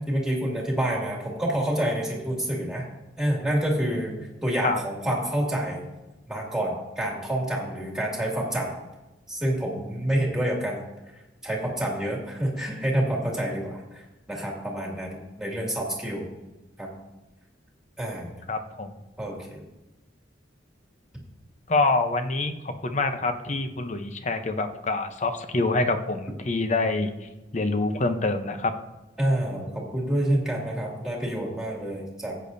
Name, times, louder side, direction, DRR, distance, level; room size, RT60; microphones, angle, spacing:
voice 1, 0.1-2.8 3.2-4.1 4.4-5.8 6.3-8.7 9.3-10.8 11.4-13.8 14.3-16.3 16.8-16.9 18.0-18.3 19.2-19.6 29.2-32.4, right 1 dB, 5° right, -2 dB, 2.3 m, -27 dB
voice 2, 18.5-19.0 21.7-28.7, left 3 dB, 40° left, 7 dB, 0.8 m, -26 dB
14.5 x 8.6 x 2.7 m, 1.0 s
head